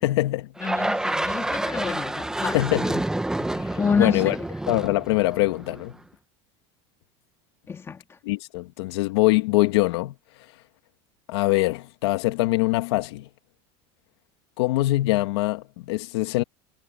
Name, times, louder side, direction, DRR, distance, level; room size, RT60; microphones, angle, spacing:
voice 1, 0.0-0.5 0.8-0.9 2.5-3.0 3.5-4.3 4.7-5.9 8.2-10.1 11.3-13.3 14.6-16.4, left 19 dB, 85° left, 1.9 m, -23 dB
voice 2, 0.6-2.6 3.8-4.5 7.7-8.2, left 5 dB, 20° left, 2.2 m, -28 dB
sound 1, 0.6-5.9, right 1 dB, 5° right, 1.1 m, -28 dB
supercardioid pair, 145°, 13 cm